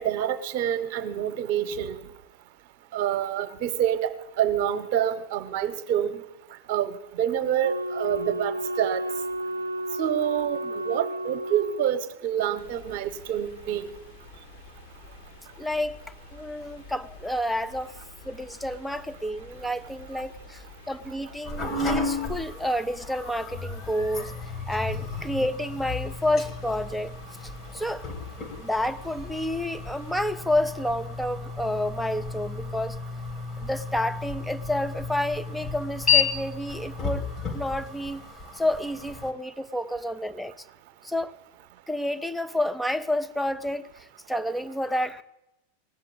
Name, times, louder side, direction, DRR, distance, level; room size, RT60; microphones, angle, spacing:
voice 1, 0.0-2.1 2.9-6.2 6.7-9.0 10.0-14.0, right 10 dB, 45° right, 1.1 m, -27 dB
Wind instrument woodwind instrument, 7.6-11.9, right 1 dB, 85° right, 0.5 m, -32 dB
sound 1, 12.6-30.3, left 3 dB, 55° left, 2.4 m, -49 dB
voice 2, 15.6-16.0 16.3-17.9 18.2-24.3 24.7-27.2 27.7-28.1 28.6-33.0 33.6-38.2 38.5-40.5 41.0-41.3 41.9-45.2, left 1 dB, ahead, 0.6 m, -29 dB
sound 2, 21.4-39.3, left 5 dB, 25° left, 1.5 m, -32 dB
18.0 x 7.6 x 8.6 m
figure-of-eight pair, 90°, 0 cm